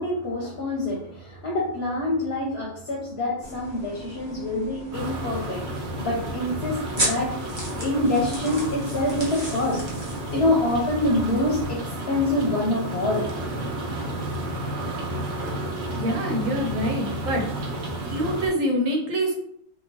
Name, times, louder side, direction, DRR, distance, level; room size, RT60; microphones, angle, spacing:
voice 1, 0.0-7.3 7.8-9.8 10.3-11.8 12.1-13.3, left 1 dB, 60° left, -3 dB, 0.8 m, -26 dB
sound 1, 3.4-11.7, right 1 dB, 25° right, 0.6 m, -35 dB
sound 2, 4.9-18.5, right 1 dB, 65° right, 0.9 m, -32 dB
voice 2, 16.0-17.5 18.1-19.3, equal, 90° right, 1 dB, 1.1 m, -25 dB
2.9 x 2.1 x 2.7 m, 0.68 s
omnidirectional pair, 1.3 m